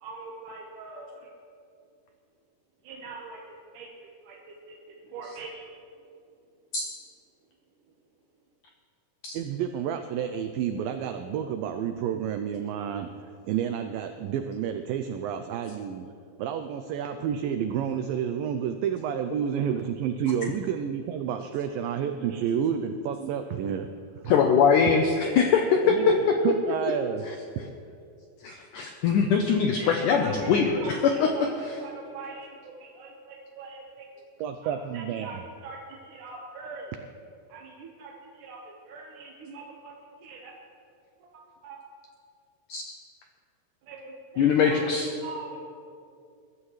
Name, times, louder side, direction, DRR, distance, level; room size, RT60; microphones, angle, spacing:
voice 1, 0.0-1.3 2.8-5.7 29.8-34.2 34.6-36.9 37.5-39.9 40.2-40.5 41.2-41.8 43.8-44.9 45.2-45.6, right 4 dB, 65° right, -3 dB, 2.3 m, -43 dB
voice 2, 9.3-16.1 16.4-23.9 24.2-24.3 25.8-26.2 26.4-27.3 34.4-35.4, right 8 dB, 90° right, 7 dB, 2.0 m, -30 dB
voice 3, 24.3-26.0 28.4-31.3 42.7-42.8 44.4-45.1, left 6 dB, 85° left, 3 dB, 1.8 m, -22 dB
21.5 x 13.5 x 3.2 m, 2.5 s
omnidirectional pair, 4.7 m